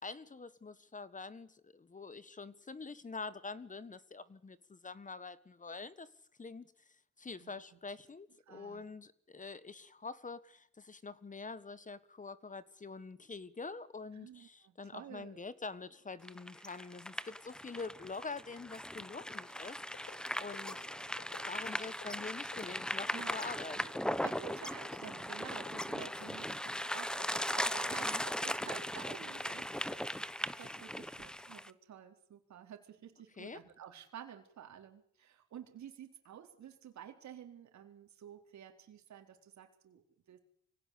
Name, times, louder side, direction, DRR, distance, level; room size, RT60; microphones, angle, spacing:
voice 1, 0.0-6.1 6.4-6.7 7.2-20.9 21.3-23.8 28.0-28.2 33.4-33.6, left 4 dB, 25° left, 16 dB, 1.5 m, -46 dB
voice 2, 7.4-7.8 8.5-8.9 14.1-15.4 21.7-21.9 23.1-23.9 24.2-30.3 30.6-40.4, right 9 dB, 65° right, 5 dB, 4.0 m, -51 dB
sound 1, 16.3-31.7, equal, 5° left, 1.0 m, -38 dB
sound 2, 19.9-20.2 20.5-20.7 21.2-21.4 21.9-22.0 22.5-22.7 23.2-23.4 23.8-24.0 24.4-24.6 24.9-25.1 25.5-25.7 26.1-26.3 26.7-26.9 27.2-27.4 27.7-27.9 28.3-28.5 28.8-29.0 29.4-29.5 29.9-30.6 31.0-31.3, left 9 dB, 70° left, 6.2 m, -51 dB
24.5 x 17.5 x 8.4 m, 0.67 s
cardioid pair, 90°, 30 cm